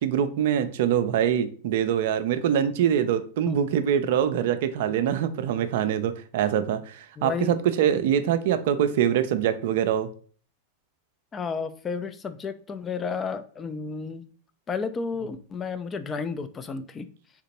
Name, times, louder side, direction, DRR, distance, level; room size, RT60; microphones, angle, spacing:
voice 1, 0.0-10.1, right 9 dB, 60° right, 11 dB, 0.3 m, -24 dB
voice 2, 7.2-7.5 11.3-14.2 14.7-17.1, left 5 dB, 25° left, 10 dB, 0.3 m, -32 dB
3.5 x 2.8 x 2.9 m, 0.43 s
figure-of-eight pair, 90°, 0 cm